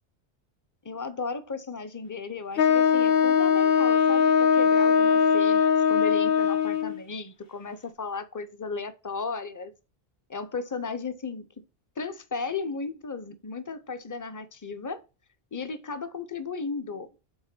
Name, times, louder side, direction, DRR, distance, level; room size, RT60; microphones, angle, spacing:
voice 1, 0.8-9.7 10.3-11.5 12.0-15.0 15.5-17.1, left 4 dB, 25° left, 0.4 m, -35 dB
Wind instrument woodwind instrument, 2.6-7.0, left 7 dB, 65° left, 1.0 m, -21 dB
5.6 x 4.1 x 5.9 m
omnidirectional pair, 1.1 m